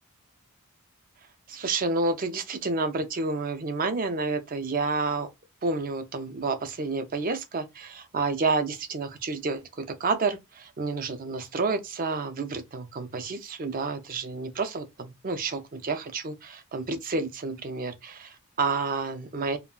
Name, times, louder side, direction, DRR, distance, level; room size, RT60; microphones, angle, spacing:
voice 1, 1.5-5.3 5.6-19.6, right 3 dB, 40° right, 0.5 m, -30 dB
2.4 x 2.1 x 3.6 m
head